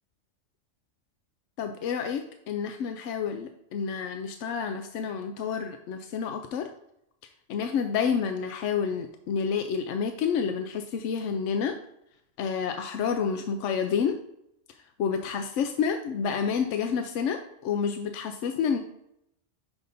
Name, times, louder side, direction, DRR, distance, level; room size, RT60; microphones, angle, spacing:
voice 1, 1.6-6.7 7.5-11.8 12.4-14.2 15.0-18.8, left 6 dB, 85° left, 6 dB, 0.9 m, -29 dB
6.7 x 5.8 x 2.6 m, 0.79 s
omnidirectional pair, 1.2 m